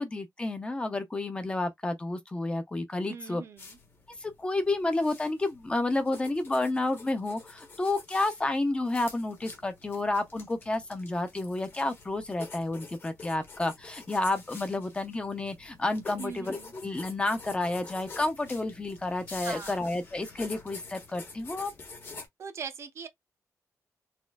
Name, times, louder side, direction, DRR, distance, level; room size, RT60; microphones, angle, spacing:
voice 1, 0.0-3.4 4.2-21.7, left 2 dB, 15° left, 0.6 m, -30 dB
voice 2, 3.1-3.8 16.2-16.7 19.4-19.8 22.4-23.1, right 6 dB, 50° right, 0.7 m, -41 dB
sound 1, 3.6-22.3, left 4 dB, 40° left, 1.1 m, -47 dB
4.2 x 2.4 x 2.3 m
wide cardioid pair, 150°, 6 cm